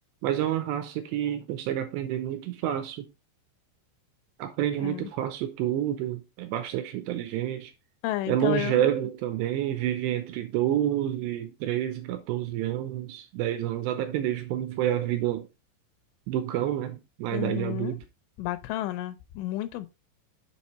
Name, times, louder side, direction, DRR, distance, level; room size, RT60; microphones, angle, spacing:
voice 1, 0.2-3.1 4.4-7.7 8.3-15.5 16.3-18.0, right 11 dB, 85° right, 2.6 m, -28 dB
voice 2, 4.8-5.1 8.0-8.9 17.3-18.0 18.4-19.9, left 15 dB, 85° left, 3.2 m, -32 dB
7.2 x 5.0 x 4.2 m
omnidirectional pair, 5.5 m